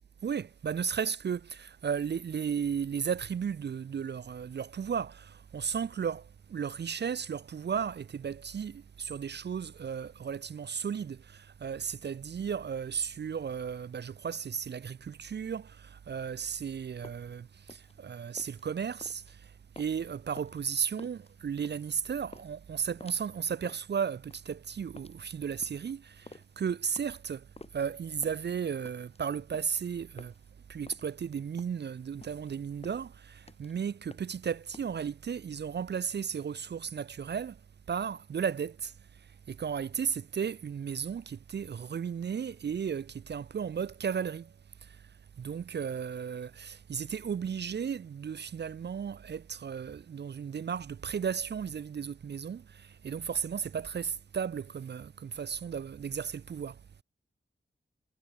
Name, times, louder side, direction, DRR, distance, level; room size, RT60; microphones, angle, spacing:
voice 1, 0.2-27.5 27.7-30.3 30.7-37.6 37.9-44.5 44.8-45.1 45.4-56.8, right 7 dB, 55° right, 0.4 m, -35 dB
sound 1, 17.0-34.9, left 2 dB, 30° left, 2.9 m, -53 dB
wide cardioid pair, 105°, 21 cm